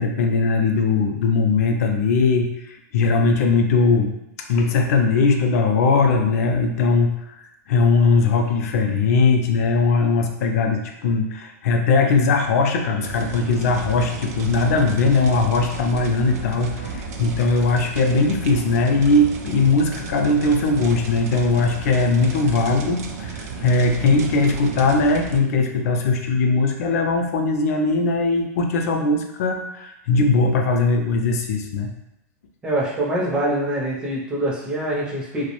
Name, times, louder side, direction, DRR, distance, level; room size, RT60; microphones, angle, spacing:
voice 1, 0.0-4.1 4.5-31.9, left 3 dB, 65° left, 4 dB, 0.4 m, -20 dB
sound 1, 13.0-25.4, right 4 dB, 70° right, 0.4 m, -33 dB
voice 2, 32.6-35.5, right 1 dB, 10° right, -4 dB, 0.4 m, -24 dB
2.4 x 2.0 x 2.9 m, 0.85 s
supercardioid pair, 165°, 9 cm